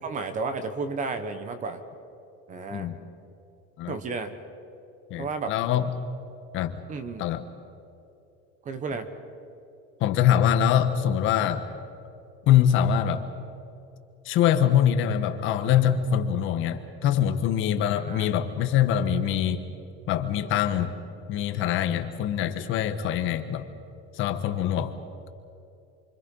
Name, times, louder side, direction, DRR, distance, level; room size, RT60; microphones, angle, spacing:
voice 1, 0.0-1.8 2.5-2.9 3.9-4.3 5.2-5.6 6.9-7.2 8.6-9.1 18.1-18.3, right 4 dB, 25° right, 10 dB, 1.3 m, -32 dB
voice 2, 5.1-5.9 6.5-6.8 7.2-7.4 10.0-11.7 12.5-13.3 14.2-19.6 20.1-20.9 21.3-23.7 24.1-25.0, left 9 dB, 45° left, 8 dB, 1.4 m, -24 dB
29.0 x 25.0 x 5.5 m, 2.8 s
cardioid pair, 175°, 29 cm